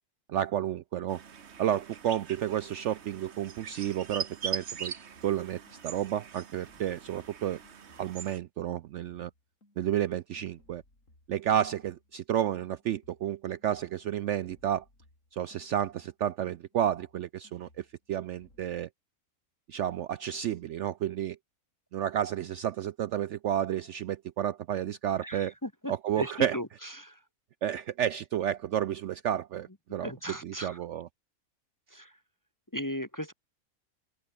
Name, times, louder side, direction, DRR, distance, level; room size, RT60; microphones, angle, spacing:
voice 1, 0.3-1.2 1.6-4.9 5.2-7.6 8.0-9.3 9.8-10.8 11.3-14.8 15.3-18.9 19.7-21.4 21.9-25.5 25.9-26.6 27.6-31.1, right 10 dB, 65° right, 0.8 m, -31 dB
sound 1, 1.1-8.4, right 7 dB, 50° right, 1.4 m, -42 dB
sound 2, 5.2-8.3 8.6-12.3 12.5-16.2 16.5-18.9, left 1 dB, 60° left, 7.6 m, -64 dB
voice 2, 25.2-27.2 30.0-30.8 31.9-32.2 32.7-33.3, equal, 15° left, 0.9 m, -37 dB
open air
omnidirectional pair, 1.5 m